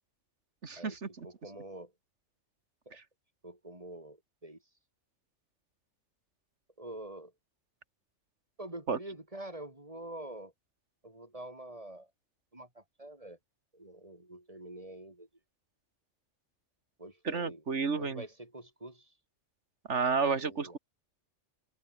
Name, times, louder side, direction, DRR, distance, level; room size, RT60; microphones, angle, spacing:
voice 1, 0.6-1.3 8.9-9.0 17.3-18.2 19.9-20.8, right 5 dB, 75° right, 2.1 m, -31 dB
voice 2, 1.2-1.9 2.9-3.0 3.4-4.6 6.8-7.3 8.6-10.5 11.0-12.1 12.5-13.4 13.7-15.3 17.0-17.6 17.9-19.1 20.3-20.8, right 1 dB, 30° right, 4.2 m, -46 dB
omnidirectional pair, 1.2 m